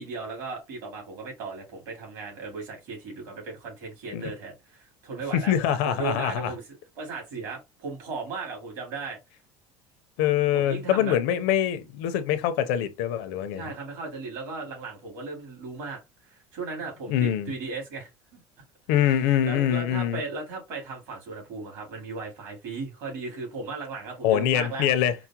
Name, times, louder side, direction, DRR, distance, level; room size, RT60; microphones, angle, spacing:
voice 1, 0.0-5.5 5.8-6.6 7.0-9.2 10.5-11.2 13.6-16.0 16.3-18.4 19.0-24.9, right 4 dB, 55° right, 2.4 m, -36 dB
voice 2, 5.3-6.5 10.2-13.7 17.1-17.5 18.9-20.2 24.2-25.1, left 10 dB, 80° left, 0.6 m, -24 dB
4.8 x 2.1 x 2.8 m
cardioid pair, 170°, 8 cm